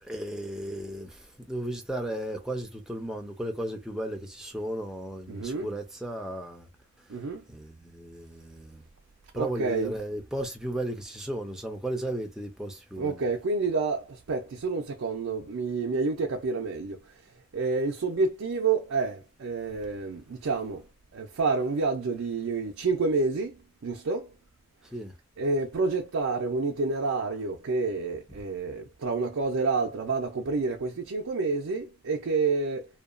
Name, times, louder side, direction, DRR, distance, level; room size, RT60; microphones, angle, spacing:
voice 1, 0.0-6.7 7.5-8.8 9.3-13.2 24.9-25.1, right 1 dB, 5° right, 0.4 m, -35 dB
voice 2, 5.3-5.7 7.1-7.4 9.4-9.9 13.0-17.0 17.5-20.9 21.1-23.6 23.8-24.3 25.4-32.9, right 4 dB, 70° right, 0.4 m, -29 dB
2.8 x 2.2 x 2.4 m
head